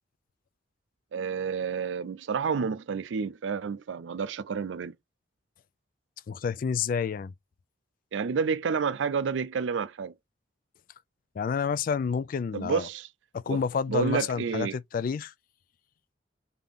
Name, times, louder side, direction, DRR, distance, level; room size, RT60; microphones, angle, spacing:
voice 1, 1.1-4.9 8.1-10.1 12.5-13.1 13.5-13.6 13.9-14.7, right 6 dB, 80° right, 0.4 m, -30 dB
voice 2, 6.3-7.3 11.4-12.9 13.3-15.3, left 6 dB, 45° left, 0.3 m, -29 dB
3.5 x 2.8 x 3.7 m
head